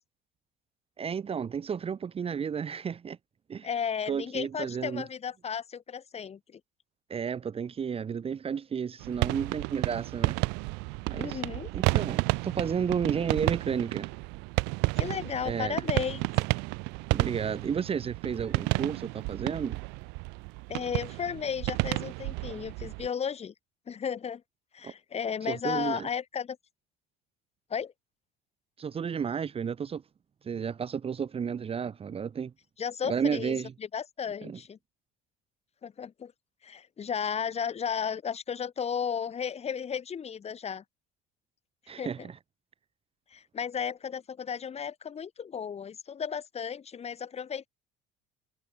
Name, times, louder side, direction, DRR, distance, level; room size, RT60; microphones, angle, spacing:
voice 1, 1.0-3.2 3.5-3.7 4.1-5.0 7.1-10.4 11.1-11.4 11.7-14.1 15.4-15.8 17.1-19.8 24.8-24.9 25.5-26.1 28.8-30.0 30.4-32.5 33.0-33.7 34.4-34.6 41.9-42.4, right 7 dB, 35° right, 1.5 m, -32 dB
voice 2, 3.6-6.6 11.1-11.7 15.0-16.3 20.7-23.5 23.9-24.4 24.7-26.6 27.7-27.9 32.8-34.8 35.8-36.3 36.6-40.8 42.0-42.3 43.3-47.7, left 7 dB, 35° left, 4.0 m, -34 dB
sound 1, 9.0-23.1, right 30 dB, 75° right, 2.4 m, -31 dB
supercardioid pair, 85°, 18 cm